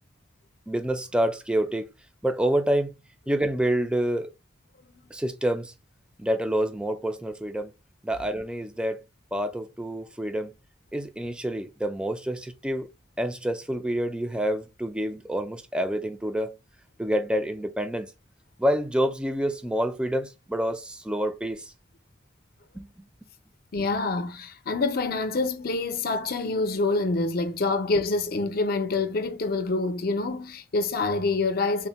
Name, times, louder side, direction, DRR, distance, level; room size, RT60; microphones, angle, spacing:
voice 1, 0.7-1.9 2.2-2.9 3.3-4.3 5.1-5.7 6.2-7.7 8.0-9.0 9.3-10.5 10.9-12.9 13.2-16.5 17.0-18.1 18.6-21.7 22.7-22.9, right 1 dB, 5° right, 0.3 m, -27 dB
voice 2, 23.7-31.9, left 3 dB, 50° left, 0.6 m, -26 dB
3.5 x 2.1 x 4.0 m
head